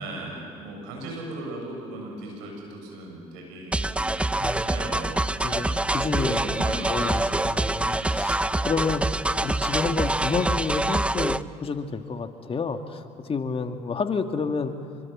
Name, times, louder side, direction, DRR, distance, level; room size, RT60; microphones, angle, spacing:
voice 1, 0.0-4.1 4.6-8.1, right 2 dB, 80° right, 0 dB, 7.3 m, -38 dB
sound 1, 3.7-11.4, right 2 dB, 10° right, 0.6 m, -25 dB
voice 2, 4.4-4.7 5.4-6.4 6.9-14.8, left 4 dB, 40° left, 6 dB, 2.0 m, -30 dB
27.0 x 24.5 x 7.4 m, 2.3 s
hypercardioid pair, 60°, 15 cm